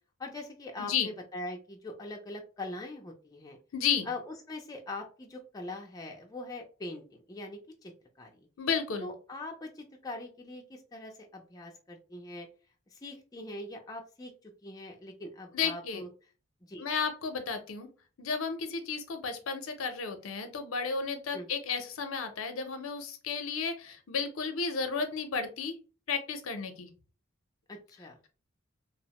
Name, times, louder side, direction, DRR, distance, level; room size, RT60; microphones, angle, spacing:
voice 1, 0.2-3.6 4.1-7.9 8.2-8.5 9.0-12.5 12.9-16.1 16.7-16.9 21.3-21.5 27.7-28.2, left 2 dB, 20° left, 1 dB, 0.3 m, -42 dB
voice 2, 3.7-4.1 8.6-9.1 15.5-16.0 16.8-17.9 18.2-25.7 26.1-26.9, left 5 dB, 80° left, 7 dB, 0.5 m, -33 dB
2.9 x 2.0 x 2.8 m, 0.36 s
head